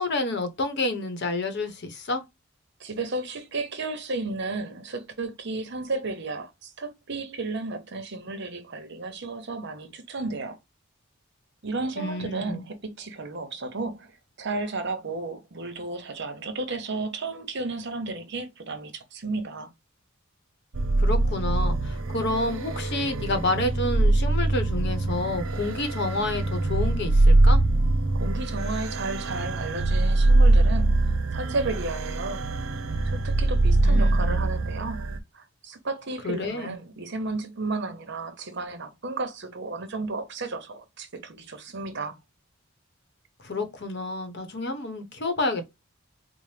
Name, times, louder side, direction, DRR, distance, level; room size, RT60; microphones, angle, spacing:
voice 1, 0.0-2.2 12.0-12.6 21.0-27.6 33.8-34.4 36.2-36.8 43.4-45.8, left 2 dB, 55° left, 0.9 m, -29 dB
voice 2, 2.8-10.6 11.6-14.1 14.4-19.7 28.1-32.5 33.1-35.1 35.3-42.2, right 3 dB, 55° right, 0.9 m, -33 dB
Ambient Space, 20.7-35.2, right 2 dB, 90° right, 0.6 m, -23 dB
4.3 x 2.1 x 3.2 m
head